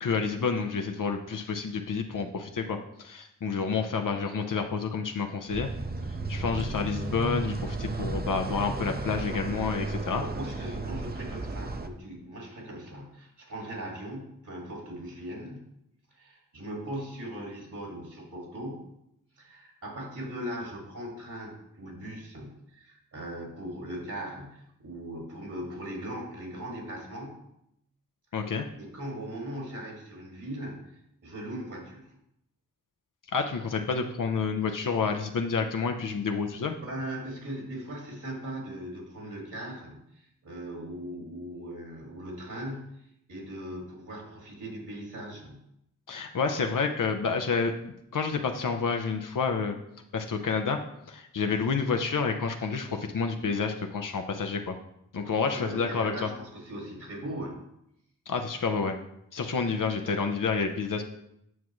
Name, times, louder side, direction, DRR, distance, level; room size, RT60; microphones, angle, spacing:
voice 1, 0.0-5.7 6.3-10.2 28.3-28.7 33.3-36.8 46.1-49.8 50.1-50.8 51.1-54.8 55.1-56.3 58.3-59.0 59.3-61.0, left 5 dB, 70° left, 4 dB, 0.8 m, -29 dB
sound 1, 5.5-11.9, right 2 dB, 30° right, 0.7 m, -34 dB
voice 2, 10.2-15.7 16.1-18.9 19.4-27.5 28.8-30.9 31.2-32.1 36.8-45.7 55.5-57.6, right 1 dB, 65° right, -1 dB, 2.5 m, -39 dB
9.3 x 5.9 x 3.1 m, 0.77 s
cardioid pair, 45°, 33 cm